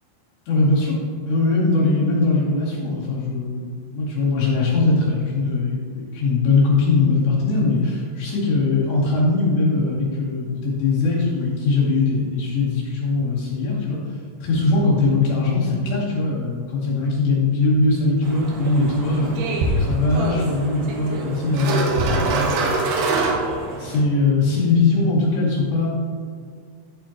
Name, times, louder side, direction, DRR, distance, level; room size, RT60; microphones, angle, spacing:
voice 1, 0.5-1.0 1.3-3.6 3.9-14.0 14.4-22.7 23.1-23.4 23.8-25.9, left 3 dB, 60° left, -7 dB, 4.4 m, -21 dB
sound 1, 18.2-24.0, right 2 dB, 70° right, 2.9 m, -24 dB
14.0 x 7.2 x 3.0 m, 2.1 s
omnidirectional pair, 5.8 m